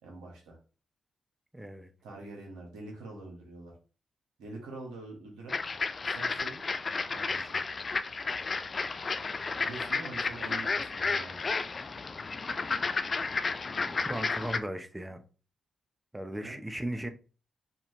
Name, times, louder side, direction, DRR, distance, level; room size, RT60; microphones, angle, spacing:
voice 1, 0.0-0.6 2.0-3.7 4.4-5.6 6.0-6.6 7.1-7.6 9.6-11.4 16.3-16.6, right 2 dB, 85° right, 1.3 m, -45 dB
voice 2, 1.5-1.9 13.8-15.2 16.1-17.1, right 1 dB, 15° right, 0.8 m, -37 dB
sound 1, 5.5-14.6, left 4 dB, 50° left, 0.4 m, -32 dB
4.2 x 2.7 x 3.1 m
hypercardioid pair, 40°, 0 cm